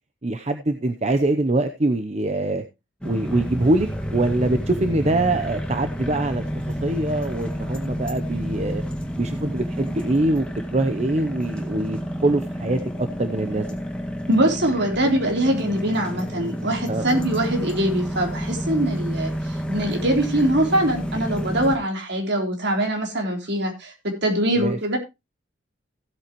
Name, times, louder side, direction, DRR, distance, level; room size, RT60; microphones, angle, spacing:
voice 1, 0.2-2.6 3.0-8.8 9.2-10.5 10.7-13.8 16.9-17.1 24.6-24.8, right 2 dB, 35° right, 8 dB, 0.8 m, -24 dB
sound 1, 3.0-21.8, equal, 5° left, 1.9 m, -30 dB
voice 2, 14.3-23.9 24.2-25.0, right 1 dB, 60° right, 2 dB, 3.6 m, -23 dB
16.0 x 8.4 x 3.0 m, 0.25 s
head